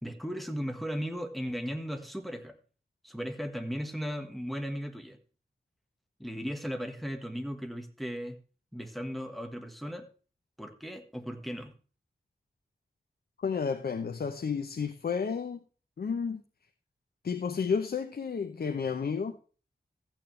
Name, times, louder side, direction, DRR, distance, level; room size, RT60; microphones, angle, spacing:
voice 1, 0.0-2.6 3.0-5.2 6.2-8.4 8.7-10.1 10.6-11.7, equal, ahead, 1.7 m, -36 dB
voice 2, 13.4-15.6 16.0-16.4 17.2-19.4, left 6 dB, 75° left, 0.9 m, -31 dB
14.5 x 9.2 x 3.3 m
wide cardioid pair, 100°, 16 cm